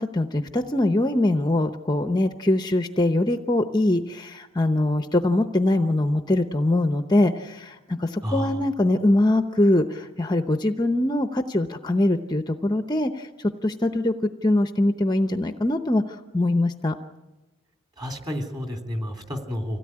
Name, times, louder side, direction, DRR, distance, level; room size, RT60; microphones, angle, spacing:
voice 1, 0.0-14.1 14.4-16.9, left 1 dB, 20° left, 8 dB, 0.7 m, -23 dB
voice 2, 8.2-8.7 18.0-19.8, equal, 20° right, 4 dB, 2.9 m, -30 dB
25.5 x 17.0 x 9.7 m, 1.1 s
head